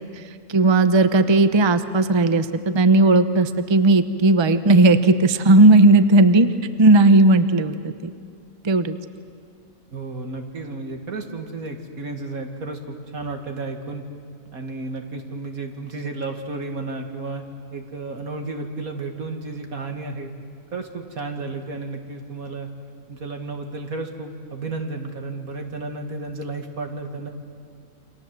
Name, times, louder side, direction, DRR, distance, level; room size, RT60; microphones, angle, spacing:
voice 1, 0.5-2.5 2.7-6.5 6.8-7.7 8.0-8.1 8.6-9.0, right 2 dB, 25° right, 11 dB, 0.7 m, -15 dB
voice 2, 9.9-14.0 14.5-17.4 17.7-20.3 20.7-22.7 23.1-27.3, right 3 dB, 75° right, 4 dB, 2.6 m, -32 dB
29.0 x 25.5 x 7.7 m, 2.2 s
omnidirectional pair, 1.5 m